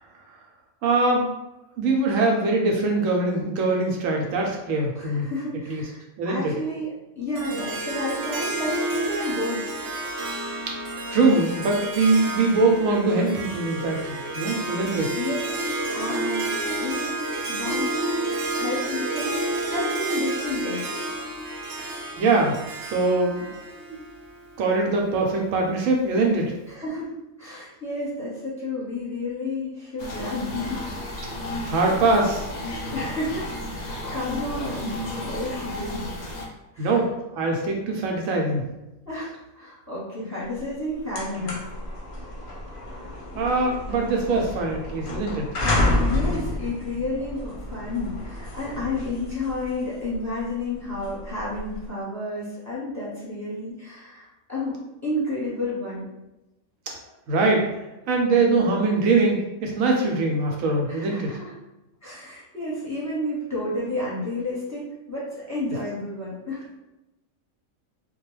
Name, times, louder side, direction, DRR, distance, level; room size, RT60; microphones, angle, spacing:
voice 1, 0.8-1.3 1.8-5.3 5.7-5.8 6.2-6.5 10.7-10.8 11.1-15.1 22.2-23.4 24.6-26.5 31.6-32.5 36.8-38.7 43.3-45.5 56.9-57.0 57.3-57.6 58.1-61.3, right 3 dB, 80° right, 0 dB, 1.0 m, -22 dB
voice 2, 4.9-6.0 6.2-6.9 7.2-9.8 15.1-15.4 15.9-17.2 17.4-20.9 26.7-27.1 27.4-30.8 31.5-31.7 32.9-36.1 36.7-36.9 39.0-41.6 46.0-56.0 60.9-61.5 62.0-66.6, left 2 dB, 15° left, -8 dB, 0.9 m, -31 dB
Harp, 7.3-24.6, right 2 dB, 65° right, 0.7 m, -30 dB
sound 1, 30.0-36.5, left 1 dB, 75° left, 0.4 m, -33 dB
sound 2, 40.6-40.7 41.0-51.9, left 1 dB, 50° left, 0.7 m, -30 dB
2.3 x 2.3 x 3.1 m, 0.98 s
omnidirectional pair, 1.4 m